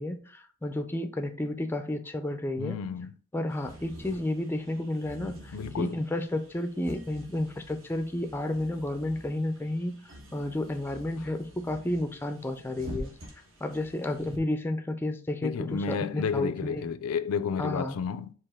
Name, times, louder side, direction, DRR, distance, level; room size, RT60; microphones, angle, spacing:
voice 1, 0.0-2.8 3.3-13.1 13.6-16.9 17.6-18.0, left 1 dB, 10° left, 0.3 m, -32 dB
voice 2, 2.6-3.1 5.5-6.0 15.4-18.3, left 6 dB, 80° left, 0.4 m, -31 dB
sound 1, 3.5-14.4, equal, 65° right, 1.2 m, -47 dB
4.8 x 3.0 x 3.4 m
head